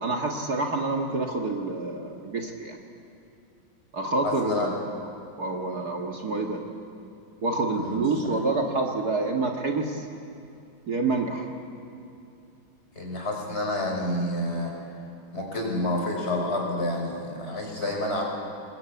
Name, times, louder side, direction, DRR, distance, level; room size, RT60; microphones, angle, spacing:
voice 1, 0.0-2.8 3.9-4.8 5.4-6.6 7.4-10.0 10.9-11.5, right 3 dB, 50° right, 1 dB, 2.3 m, -27 dB
voice 2, 4.2-4.7 7.8-8.1 13.0-14.7 15.3-18.2, left 1 dB, 30° left, -1 dB, 5.5 m, -29 dB
26.0 x 21.0 x 8.6 m, 2.7 s
omnidirectional pair, 2.1 m